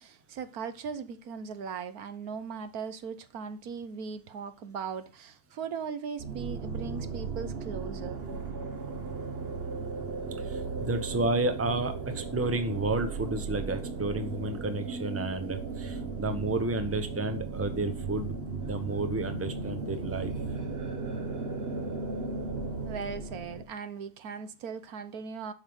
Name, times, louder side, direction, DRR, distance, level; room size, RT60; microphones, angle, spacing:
voice 1, 0.0-8.2 22.8-25.5, right 6 dB, 65° right, 1.4 m, -38 dB
sound 1, 6.2-23.6, right 4 dB, 40° right, 1.2 m, -36 dB
voice 2, 10.4-18.3 18.6-20.3, right 2 dB, 10° right, 0.9 m, -31 dB
8.3 x 5.7 x 8.0 m
omnidirectional pair, 1.8 m